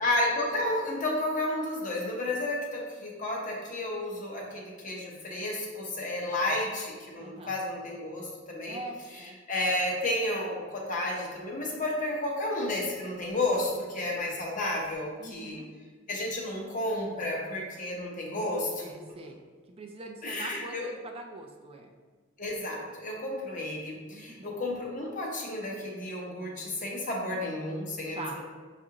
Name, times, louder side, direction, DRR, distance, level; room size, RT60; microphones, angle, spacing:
voice 1, 0.0-8.8 9.5-15.6 16.1-19.2 20.2-20.9 22.4-28.4, left 1 dB, 45° left, -2 dB, 0.8 m, -32 dB
voice 2, 6.3-6.6 7.2-7.5 8.7-9.4 13.7-14.2 15.2-15.7 18.8-19.4 19.7-21.9 24.1-24.5 28.1-28.4, right 2 dB, 30° right, 3 dB, 0.3 m, -43 dB
6.1 x 2.4 x 2.8 m, 1.4 s
head